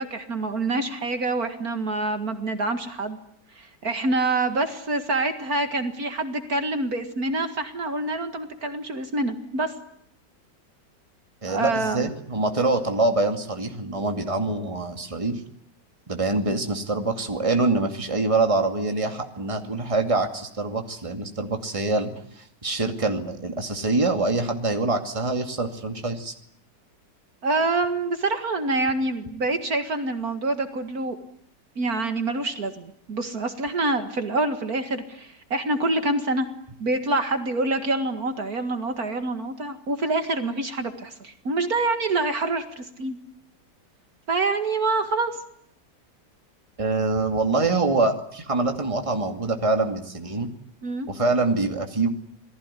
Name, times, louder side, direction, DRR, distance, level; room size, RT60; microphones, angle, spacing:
voice 1, 0.0-3.2 3.6-9.7 11.5-12.1 27.4-31.2 31.8-36.5 36.8-43.2 44.3-45.3 50.8-51.1, right 2 dB, 55° right, 7 dB, 2.4 m, -26 dB
voice 2, 11.4-15.4 16.1-22.1 22.4-26.3 46.8-50.5 51.1-52.1, right 3 dB, 20° right, 5 dB, 2.4 m, -25 dB
28.0 x 19.0 x 10.0 m, 0.70 s
omnidirectional pair, 1.9 m